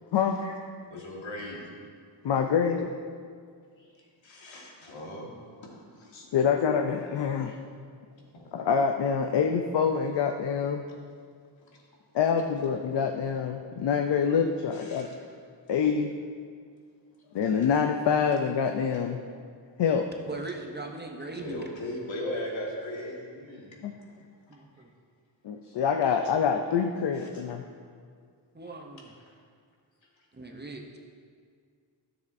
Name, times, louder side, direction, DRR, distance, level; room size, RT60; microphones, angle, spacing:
voice 1, 0.9-1.7 3.8-5.3 5.6-6.1 8.3-8.5 14.7-15.1 21.3-23.8 26.1-26.2 27.1-27.5, left 1 dB, 85° left, -2 dB, 1.7 m, -38 dB
voice 2, 2.2-2.9 6.1-7.6 8.5-10.8 12.1-15.1 15.7-16.1 17.3-19.2 19.8-20.1 23.8-23.9 25.4-27.6, left 6 dB, 65° left, 5 dB, 0.5 m, -26 dB
voice 3, 20.3-21.6 24.5-24.9 28.5-29.1 30.3-30.8, right 3 dB, 25° right, 2 dB, 0.6 m, -39 dB
13.0 x 6.9 x 2.6 m, 2.1 s
wide cardioid pair, 160°, 45 cm